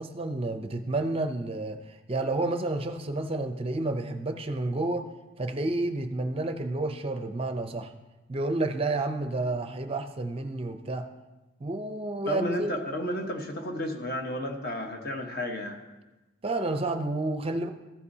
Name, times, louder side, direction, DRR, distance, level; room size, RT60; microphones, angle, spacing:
voice 1, 0.0-5.1 5.4-7.9 8.3-11.1 11.6-12.7 16.4-17.7, right 2 dB, 30° right, 7 dB, 0.5 m, -30 dB
voice 2, 12.3-15.8, left 1 dB, 50° left, 3 dB, 1.1 m, -32 dB
14.0 x 8.2 x 2.7 m, 1.1 s
head